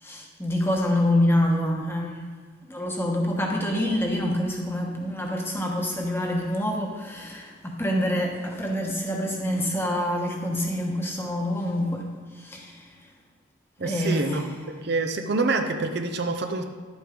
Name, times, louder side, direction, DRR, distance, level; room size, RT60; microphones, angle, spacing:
voice 1, 0.0-2.2 2.7-12.9 13.8-14.5, left 1 dB, 10° left, 0 dB, 1.1 m, -26 dB
voice 2, 13.8-14.6 14.8-16.6, right 3 dB, 50° right, 6 dB, 0.6 m, -26 dB
11.5 x 8.9 x 3.8 m, 1.5 s
head